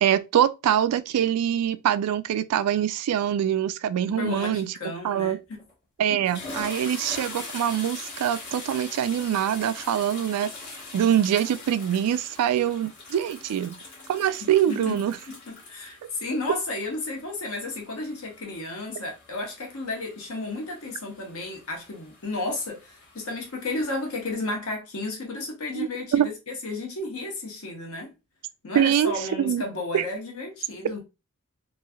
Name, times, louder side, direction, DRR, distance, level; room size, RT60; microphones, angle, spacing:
voice 1, 0.0-4.7 5.0-5.4 6.0-10.5 10.9-13.8 14.1-15.2 16.0-16.1 25.7-26.3 28.7-29.6 29.9-30.1, right 10 dB, 90° right, 0.3 m, -24 dB
voice 2, 4.1-5.6 6.1-6.2 14.7-15.0 15.3-28.1 28.6-31.0, left 2 dB, 70° left, 1.0 m, -33 dB
sound 1, 5.5-5.7 6.1-24.3, left 3 dB, 50° left, 1.3 m, -43 dB
3.1 x 2.6 x 2.2 m
head